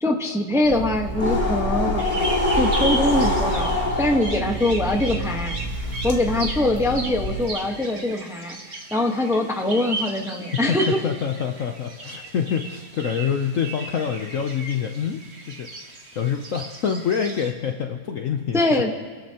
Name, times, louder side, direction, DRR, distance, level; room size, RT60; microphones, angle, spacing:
voice 1, 0.0-2.1 2.5-5.6 6.0-11.0 18.5-18.9, left 1 dB, ahead, 2 dB, 0.9 m, -23 dB
sound 1, 0.6-7.5, left 1 dB, 25° left, 2.4 m, -25 dB
sound 2, 2.0-17.5, right 2 dB, 40° right, 1.6 m, -35 dB
voice 2, 10.7-15.2 15.5-15.7 16.2-18.6, left 7 dB, 60° left, 4 dB, 0.9 m, -26 dB
27.0 x 13.0 x 2.9 m, 1.4 s
omnidirectional pair, 1.9 m